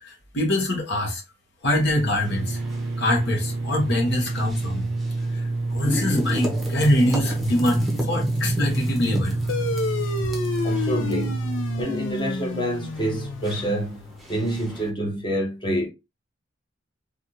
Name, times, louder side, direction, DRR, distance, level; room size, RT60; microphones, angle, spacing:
voice 1, 0.0-1.2 1.6-2.6 3.0-4.9 5.3-9.4, left 1 dB, 60° left, 1.1 m, -24 dB
sound 1, 1.7-14.9, equal, ahead, 0.8 m, -35 dB
sound 2, 2.3-11.8, right 2 dB, 65° right, 0.5 m, -28 dB
sound 3, 9.5-14.4, left 4 dB, 80° left, 0.5 m, -30 dB
voice 2, 10.6-11.4 11.8-15.9, right 1 dB, 25° left, 1.0 m, -27 dB
3.4 x 2.4 x 2.7 m
head